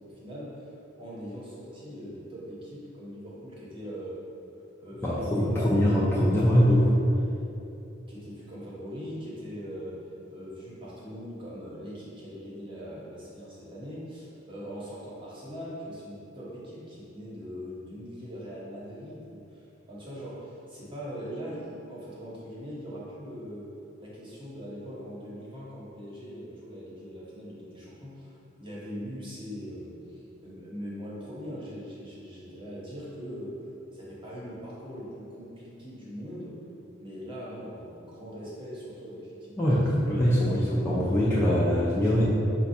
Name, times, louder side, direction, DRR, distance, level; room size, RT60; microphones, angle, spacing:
voice 1, 0.1-0.7 0.9-4.2 4.8-6.9 8.1-10.0 10.3-23.7 24.0-33.6 33.9-36.5 37.0-40.1 40.7-42.3, equal, 25° right, -6 dB, 1.0 m, -41 dB
voice 2, 5.0-6.9 39.6-42.3, equal, 10° left, -8 dB, 0.4 m, -23 dB
5.1 x 2.3 x 4.1 m, 2.7 s
head